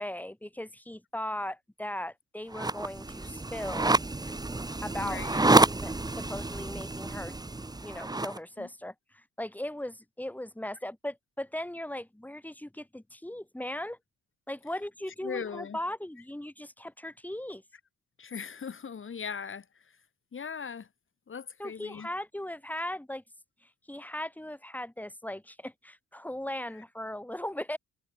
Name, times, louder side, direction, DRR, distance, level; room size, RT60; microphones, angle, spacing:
voice 1, 0.0-4.0 4.8-7.3 7.8-14.0 14.5-17.6 21.6-23.2 23.6-27.8, left 1 dB, 5° left, 7.8 m, -38 dB
sound 1, 2.5-8.4, right 2 dB, 15° right, 1.6 m, -28 dB
voice 2, 5.0-5.5 8.6-8.7 15.2-15.8 18.2-20.0 20.3-20.9 21.3-22.1 26.7-26.8, left 6 dB, 40° left, 3.9 m, -39 dB
cardioid pair, 90°, 30 cm